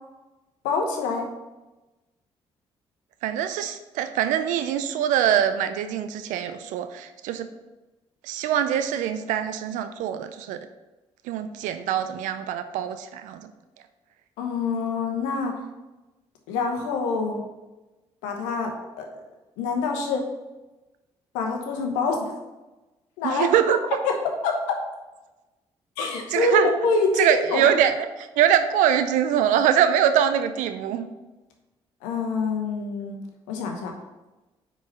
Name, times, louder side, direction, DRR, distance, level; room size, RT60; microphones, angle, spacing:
voice 1, 0.6-1.3 14.4-15.5 16.5-17.4 18.2-18.7 19.0-19.1 19.6-20.2 21.3-22.3 23.2-23.5 24.0-24.1 24.4-24.6 26.0-27.7 32.0-33.2 33.5-33.9, left 4 dB, 85° left, 2 dB, 1.0 m, -25 dB
voice 2, 3.2-7.5 8.2-10.6 11.3-13.5 23.2-23.8 26.3-26.7 27.2-31.1, right 9 dB, 80° right, 10 dB, 0.5 m, -23 dB
4.9 x 4.6 x 5.4 m, 1.1 s
hypercardioid pair, 50°, 13 cm